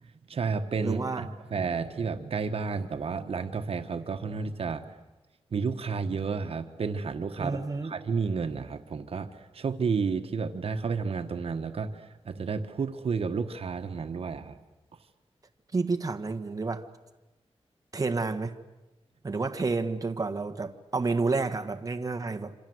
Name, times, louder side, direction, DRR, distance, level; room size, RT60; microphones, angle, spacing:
voice 1, 0.3-4.8 5.5-14.6, right 5 dB, 70° right, 1.4 m, -31 dB
voice 2, 0.8-1.3 7.4-7.9 15.7-16.9 17.9-18.5 19.2-22.5, right 3 dB, 35° right, 1.6 m, -30 dB
27.5 x 26.0 x 8.0 m
wide cardioid pair, 105°, 10 cm